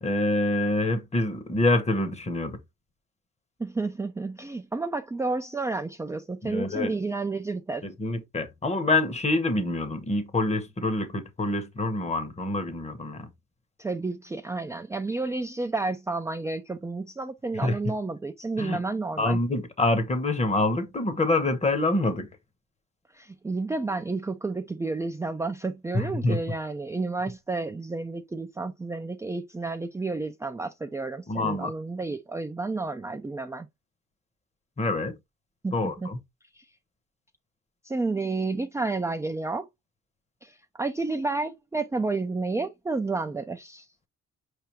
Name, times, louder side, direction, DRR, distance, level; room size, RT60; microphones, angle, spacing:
voice 1, 0.0-2.6 6.4-6.9 7.8-13.3 17.5-17.8 18.6-18.8 19.2-22.3 25.9-26.4 31.3-31.7 34.8-35.2 35.7-36.2, left 2 dB, 20° left, 1.0 m, -26 dB
voice 2, 3.6-7.8 13.8-19.4 23.1-33.7 35.6-36.1 36.5-36.6 37.8-39.7 40.4-43.9, right 3 dB, 10° right, 0.4 m, -31 dB
4.8 x 3.4 x 2.9 m
cardioid pair, 90°, 30 cm